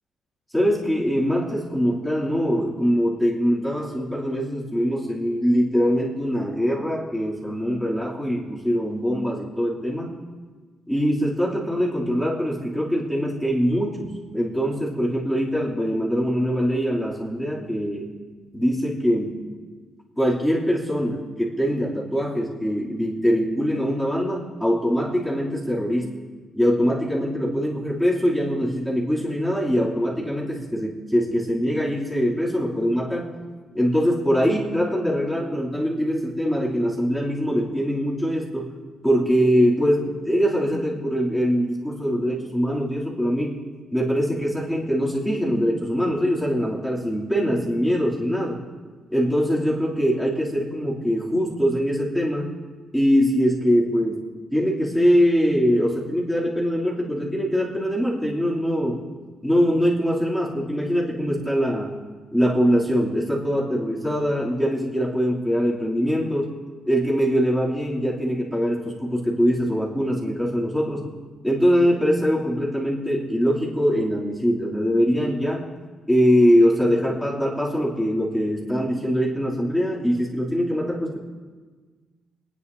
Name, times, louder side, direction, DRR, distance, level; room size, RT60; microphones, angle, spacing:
voice 1, 0.5-10.1 10.9-18.1 18.5-19.4 20.2-26.2 26.5-33.3 33.7-38.7 39.0-43.6 43.9-48.6 49.1-52.5 52.9-54.2 54.5-59.0 59.4-62.0 62.3-66.5 66.9-71.1 71.4-75.6 76.1-81.2, equal, ahead, -7 dB, 2.8 m, -23 dB
28.0 x 9.8 x 2.7 m, 1.4 s
cardioid pair, 90°, 0 cm